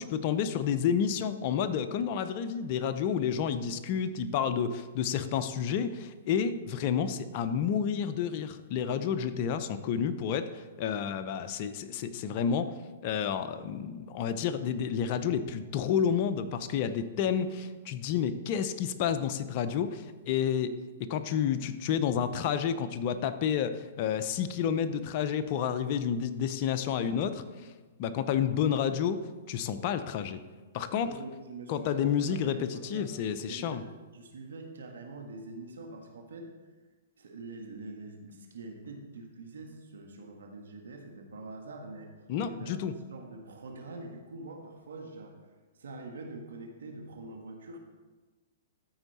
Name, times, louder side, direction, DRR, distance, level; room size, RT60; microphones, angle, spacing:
voice 1, 0.0-12.7 13.0-27.4 28.0-29.2 29.5-30.4 30.7-31.2 31.7-33.8 42.3-42.9, left 8 dB, 45° left, 11 dB, 0.6 m, -30 dB
voice 2, 31.0-36.5 37.2-42.1 42.4-42.8 43.1-45.4 45.8-47.8, right 2 dB, 80° right, 3 dB, 1.5 m, -44 dB
13.5 x 4.5 x 4.2 m, 1.3 s
hypercardioid pair, 130°, 0 cm